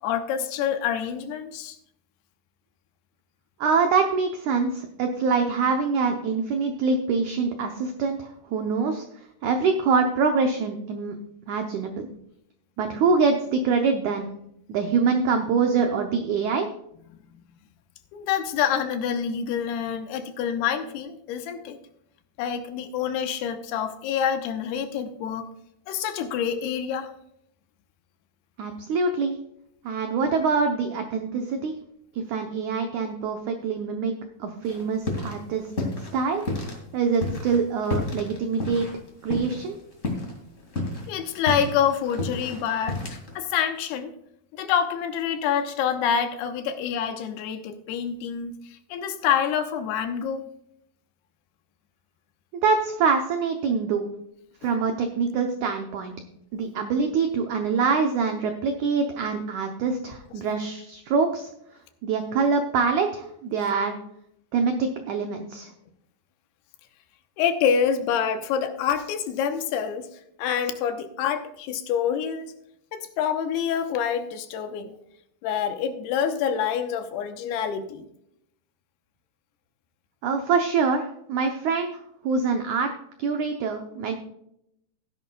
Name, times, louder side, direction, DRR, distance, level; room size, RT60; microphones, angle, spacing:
voice 1, 0.0-1.8 18.1-21.8 22.4-25.5 25.9-27.1 41.1-44.1 44.5-48.5 48.9-50.4 67.4-70.1 70.4-72.5 72.9-74.9 75.4-78.1, left 8 dB, 85° left, 8 dB, 2.8 m, -27 dB
voice 2, 3.6-9.0 9.4-11.2 11.5-12.1 12.8-14.3 14.7-16.7 28.6-29.4 29.8-31.7 32.1-34.1 34.4-36.4 36.9-38.9 39.2-39.7 52.6-54.1 54.6-56.1 56.5-61.5 62.0-64.0 64.5-65.7 80.2-82.9 83.2-84.1, right 5 dB, 90° right, 5 dB, 1.6 m, -25 dB
sound 1, 34.6-35.4 35.7-36.8 37.1-39.7 40.0-40.3 40.6-43.4, left 2 dB, 30° left, 1.6 m, -30 dB
15.0 x 11.0 x 2.3 m, 0.76 s
omnidirectional pair, 4.6 m